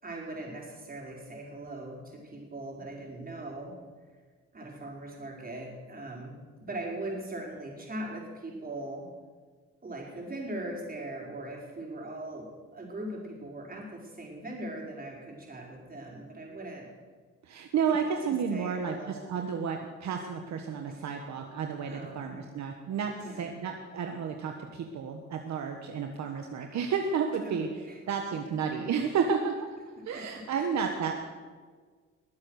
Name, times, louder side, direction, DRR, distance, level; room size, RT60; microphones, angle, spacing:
voice 1, 0.0-3.7 4.5-9.1 9.8-16.9 18.5-19.2 21.9-22.3 23.2-23.6 27.5-27.6 27.8-28.0 30.0-30.7, right 1 dB, 30° right, -2 dB, 5.0 m, -40 dB
voice 2, 17.4-27.7 28.1-29.6 30.1-31.1, right 6 dB, 65° right, 4 dB, 1.3 m, -31 dB
21.0 x 7.8 x 6.5 m, 1.5 s
cardioid pair, 90°, 30 cm